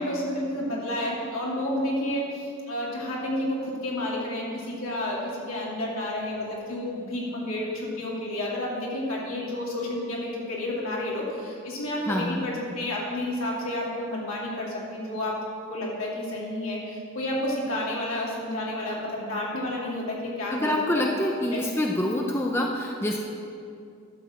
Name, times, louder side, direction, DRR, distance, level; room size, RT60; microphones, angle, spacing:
voice 1, 0.0-5.2 5.5-15.3 15.7-21.1 21.5-21.6, left 1 dB, 75° left, -4 dB, 2.4 m, -30 dB
voice 2, 12.1-12.4 20.5-23.2, left 1 dB, 10° left, 0 dB, 0.5 m, -26 dB
11.5 x 4.6 x 7.0 m, 2.4 s
head